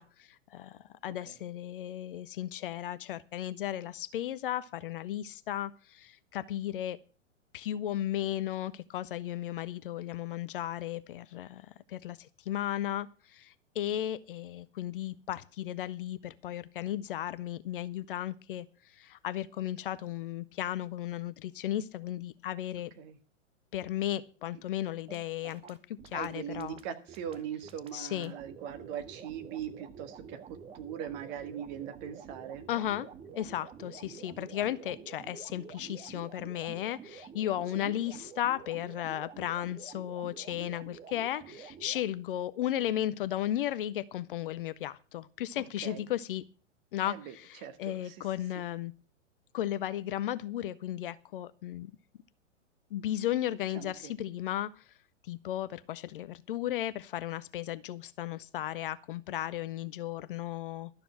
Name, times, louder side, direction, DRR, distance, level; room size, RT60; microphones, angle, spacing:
voice 1, 0.0-7.0 7.5-11.6 11.9-18.7 19.0-22.9 23.7-26.8 27.9-28.3 32.7-33.1 33.3-46.4 46.9-48.9 49.5-51.9 52.9-54.8 55.3-60.9, left 12 dB, 45° left, 16 dB, 0.6 m, -35 dB
sound 1, 25.1-42.0, right 6 dB, 15° right, 0.9 m, -49 dB
voice 2, 26.1-32.7 37.7-37.9 45.6-46.1 47.0-48.3 53.7-54.2, right 9 dB, 35° right, 8 dB, 1.7 m, -41 dB
12.5 x 6.8 x 7.4 m, 0.37 s
figure-of-eight pair, 105°, 37 cm